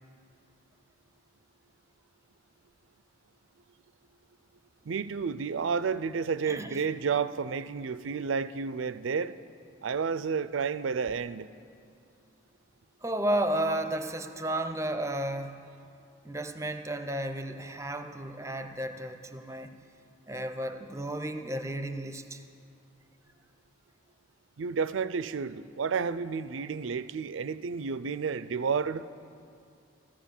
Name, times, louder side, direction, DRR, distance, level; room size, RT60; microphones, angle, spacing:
voice 1, 4.9-9.4 9.8-11.5 24.6-29.1, right 5 dB, 80° right, 0.5 m, -31 dB
voice 2, 6.5-6.8 13.0-15.6 16.2-19.7 20.3-22.4, right 1 dB, 15° right, 0.6 m, -33 dB
14.0 x 12.5 x 7.2 m
head